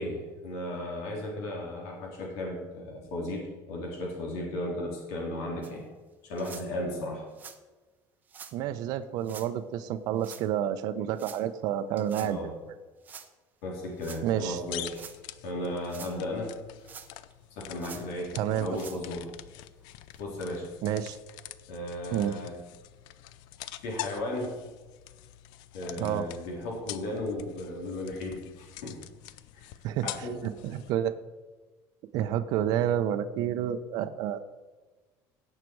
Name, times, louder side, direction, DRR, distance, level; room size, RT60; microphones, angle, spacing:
voice 1, 0.0-5.9 6.2-7.2 12.2-12.5 13.6-15.1 15.4-16.5 17.6-19.3 20.2-20.7 21.7-22.5 23.8-24.6 25.7-29.0 29.5-29.7 30.0-30.4, left 1 dB, 85° left, -2 dB, 3.7 m, -35 dB
sound 1, 5.6-5.7 6.4-6.7 7.3-7.6 8.3-8.5 9.2-9.5 10.2-10.5 11.2-11.4 12.0-12.3 13.0-13.3 14.0-14.2 14.8-15.2 15.7-16.2 16.8-17.3 17.8-18.1 18.7-19.0 19.6-19.7 20.1-20.2 21.0-21.1, right 6 dB, 20° right, 0.8 m, -46 dB
voice 2, 8.5-12.5 14.2-14.6 18.3-18.7 20.8-21.2 22.1-22.3 25.9-26.3 29.8-31.1 32.1-34.4, right 10 dB, 55° right, 11 dB, 0.7 m, -29 dB
sound 2, 14.3-30.9, left 14 dB, 65° left, 0.6 m, -45 dB
17.0 x 6.7 x 4.7 m, 1.3 s
cardioid pair, 165°, 8 cm